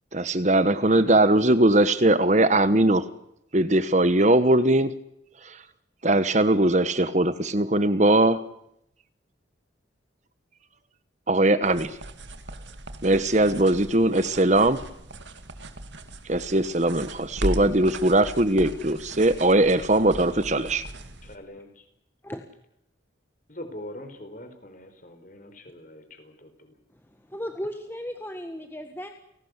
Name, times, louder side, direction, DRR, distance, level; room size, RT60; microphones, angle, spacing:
voice 1, 0.1-3.0 3.5-4.9 5.4-5.6 6.0-8.4 11.3-11.9 13.0-14.8 16.3-20.8, right 1 dB, 35° right, 13 dB, 1.2 m, -20 dB
sound 1, 11.6-21.4, right 1 dB, 70° right, 2.4 m, -37 dB
voice 2, 21.2-21.8 23.5-26.7, left 1 dB, 45° left, 8 dB, 4.8 m, -43 dB
voice 3, 26.9-29.1, equal, 10° left, 5 dB, 1.6 m, -36 dB
30.0 x 18.5 x 8.2 m, 0.80 s
head